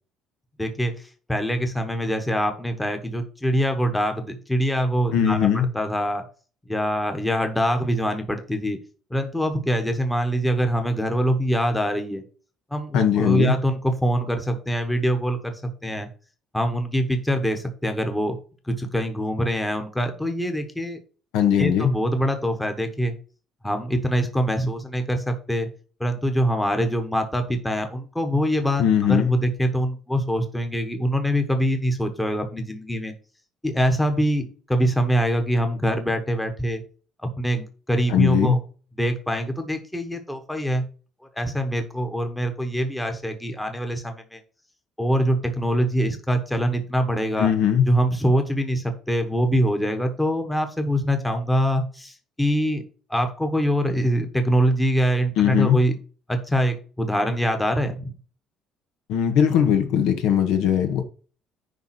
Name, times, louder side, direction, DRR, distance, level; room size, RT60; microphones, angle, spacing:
voice 1, 0.6-6.2 6.6-8.8 9.1-12.2 12.7-16.1 16.5-18.4 18.6-21.0 21.6-23.1 23.6-25.7 26.0-33.1 33.6-36.8 37.2-38.6 39.0-40.9 41.3-44.4 45.0-47.5 47.9-52.8 53.1-56.0 56.3-58.1, equal, 5° left, 1.2 m, -24 dB
voice 2, 5.1-5.7 12.9-13.5 21.3-21.9 28.8-29.3 38.1-38.6 47.4-47.8 55.4-55.8 59.1-61.0, left 9 dB, 85° left, 1.7 m, -19 dB
10.5 x 3.7 x 5.9 m
cardioid pair, 170°, 0 cm